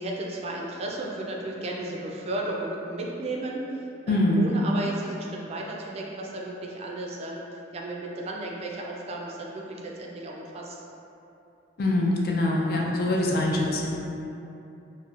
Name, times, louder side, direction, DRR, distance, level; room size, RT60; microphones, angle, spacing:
voice 1, 0.0-10.8 12.5-13.0 13.8-14.0, right 2 dB, 35° right, -1 dB, 0.3 m, -34 dB
voice 2, 4.1-4.5 11.8-14.0, left 1 dB, 55° left, -2 dB, 0.4 m, -24 dB
3.9 x 2.1 x 2.4 m, 2.8 s
head